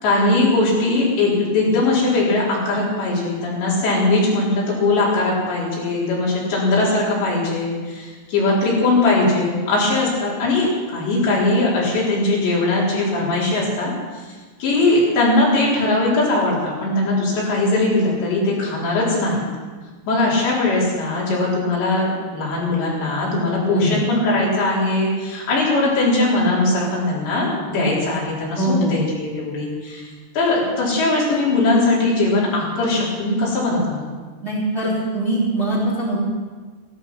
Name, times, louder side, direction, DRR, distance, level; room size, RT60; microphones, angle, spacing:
voice 1, 0.0-13.9 14.6-19.4 20.1-30.1 30.3-34.1, left 2 dB, 70° left, -5 dB, 6.2 m, -20 dB
voice 2, 28.6-28.9 34.4-36.2, right 1 dB, 15° right, -6 dB, 3.1 m, -22 dB
16.0 x 14.0 x 5.9 m, 1.4 s
omnidirectional pair, 5.2 m